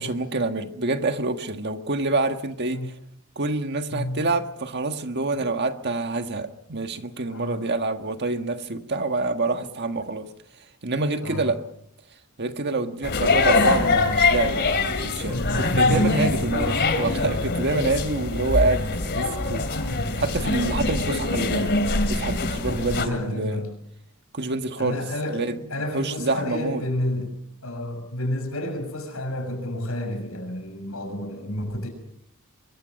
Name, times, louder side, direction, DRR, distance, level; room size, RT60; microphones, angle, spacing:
voice 1, 0.0-2.9 3.3-10.3 10.8-11.6 12.4-21.7 22.1-23.6 24.3-25.0 25.3-25.6 25.9-26.8, right 3 dB, 50° right, 1.6 m, -27 dB
voice 2, 3.9-4.3 7.3-7.6 11.2-11.5 15.5-16.3 16.8-16.9 17.6-17.9 19.1-19.4 21.0-21.2 22.6-23.7 24.8-25.4 25.7-27.4 27.6-31.9, left 1 dB, 75° left, 6.6 m, -30 dB
sound 1, 13.0-23.1, left 3 dB, 50° left, 2.8 m, -23 dB
24.0 x 23.5 x 5.3 m
head